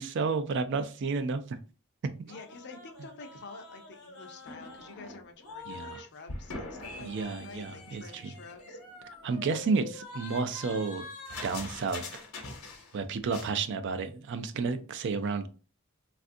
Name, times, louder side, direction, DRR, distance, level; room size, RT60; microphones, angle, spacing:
voice 1, 0.0-1.6 5.7-6.0 7.0-8.3 9.2-11.1 11.4-12.0 12.9-15.5, right 4 dB, 55° right, 0.4 m, -31 dB
sound 1, 2.3-6.0 6.3-13.0 13.2-13.5, left 3 dB, 75° left, 1.0 m, -44 dB
voice 2, 2.3-8.8, left 4 dB, 50° left, 0.5 m, -49 dB
3.4 x 2.5 x 2.5 m
head